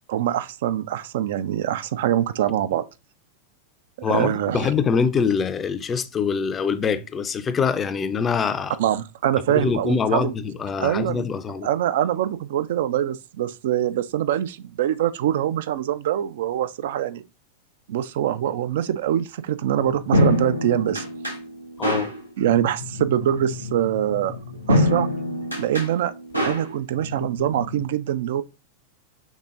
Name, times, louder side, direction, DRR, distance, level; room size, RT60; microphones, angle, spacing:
voice 1, 0.1-2.8 4.0-4.7 8.8-10.3 10.8-11.2 11.6-17.2 17.9-21.0 22.4-24.4 24.7-25.1 25.6-26.1 26.4-28.4, right 11 dB, 55° right, 0.3 m, -24 dB
voice 2, 4.0-8.8 9.5-11.7 21.8-22.1, left 6 dB, 20° left, 0.4 m, -24 dB
sound 1, 19.7-27.8, left 1 dB, 90° right, 0.9 m, -26 dB
5.4 x 3.6 x 2.4 m
figure-of-eight pair, 90°, 0 cm